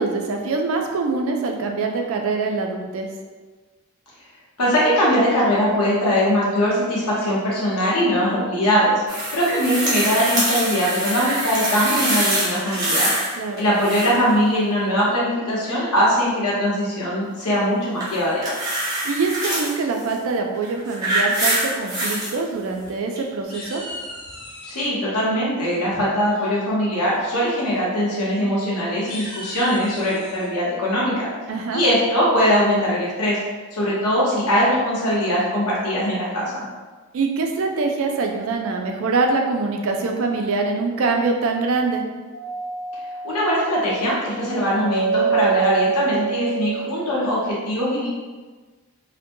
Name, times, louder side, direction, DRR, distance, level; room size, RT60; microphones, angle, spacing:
voice 1, 0.0-3.1 13.4-13.7 19.0-23.8 31.5-31.8 37.1-42.0, right 3 dB, 65° right, 2 dB, 0.3 m, -24 dB
voice 2, 4.6-9.0 9.3-13.1 13.6-18.5 24.6-31.3 31.7-33.4 33.7-36.7 43.2-48.1, equal, 90° left, -6 dB, 0.9 m, -21 dB
sound 1, 9.1-13.3 13.6-14.3 18.0-19.7 20.5-22.3 23.2-23.3, right 1 dB, 15° right, 0.6 m, -24 dB
sound 2, 22.5-23.1 23.5-24.9 26.3-26.7 27.1-27.4 27.6-27.8 28.2-28.3 28.9-30.5, left 1 dB, 65° left, 1.0 m, -38 dB
Doorbell, 42.3-47.2, right 6 dB, 40° left, 0.5 m, -26 dB
2.5 x 2.1 x 2.6 m, 1.3 s
head